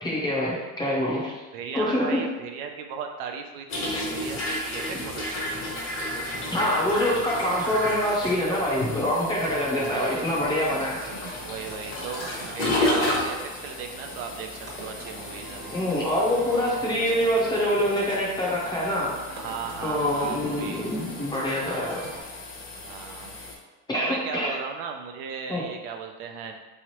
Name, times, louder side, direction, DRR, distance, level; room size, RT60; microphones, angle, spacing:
voice 1, 0.0-1.3 1.7-2.2 6.5-11.0 15.7-19.2 19.8-22.0 23.9-24.5 25.5-25.6, equal, 10° left, -4 dB, 0.6 m, -25 dB
voice 2, 1.5-5.7 9.8-10.2 11.4-15.8 19.3-20.9 22.8-23.4 23.9-26.6, right 6 dB, 60° right, 4 dB, 0.5 m, -36 dB
sound 1, 3.7-23.5, left 1 dB, 35° left, 0.8 m, -33 dB
sound 2, 5.3-22.2, right 2 dB, 30° right, 0.9 m, -42 dB
3.6 x 3.2 x 2.9 m, 1.2 s
cardioid pair, 155°, 36 cm